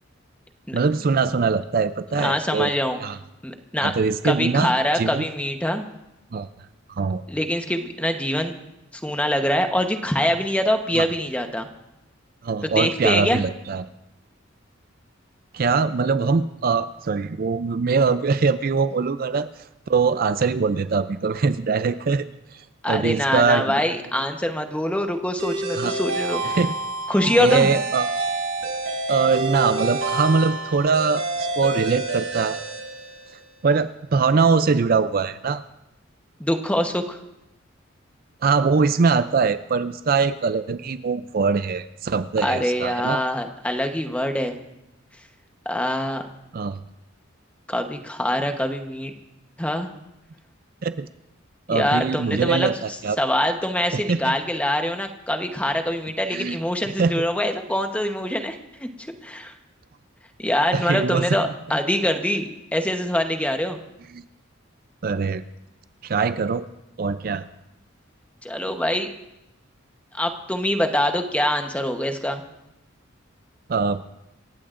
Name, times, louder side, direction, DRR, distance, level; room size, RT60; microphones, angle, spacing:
voice 1, 0.7-2.7 3.0-3.2 3.8-5.2 6.3-6.5 6.9-7.2 11.0-11.1 12.4-13.9 15.5-19.5 19.9-22.3 22.9-23.7 25.7-26.0 26.4-26.7 27.4-28.2 29.1-32.6 33.6-35.6 38.4-43.2 46.5-46.8 50.8-51.1 51.7-53.2 53.9-54.3 56.3-56.6 57.0-57.1 60.7-61.2 64.1-64.2 65.0-65.4 66.0-66.6 67.0-67.5 73.7-74.0, right 5 dB, 45° right, 12 dB, 0.4 m, -22 dB
voice 2, 2.2-3.0 3.4-3.9 4.2-5.8 7.3-8.5 8.9-11.7 12.6-13.4 22.8-26.4 27.1-27.7 36.4-37.2 42.4-44.6 45.6-46.2 47.7-49.1 49.6-49.9 51.7-52.8 53.2-58.9 59.2-59.5 60.4-63.8 68.4-69.1 70.1-72.4, left 1 dB, 5° left, 5 dB, 1.0 m, -24 dB
sound 1, 25.4-33.5, right 2 dB, 85° right, 6.9 m, -28 dB
27.0 x 15.5 x 2.5 m, 0.91 s
head